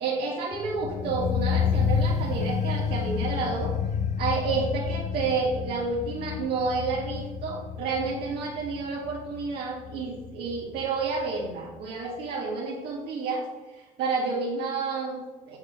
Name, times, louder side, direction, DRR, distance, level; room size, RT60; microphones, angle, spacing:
voice 1, 0.0-3.7 4.2-13.4 13.7-15.6, right 4 dB, 80° right, -5 dB, 2.3 m, -30 dB
sound 1, 0.5-11.5 11.8-11.9, left 7 dB, 45° left, 0.5 m, -30 dB
8.7 x 6.6 x 5.4 m, 1.2 s
cardioid pair, 110°, 17 cm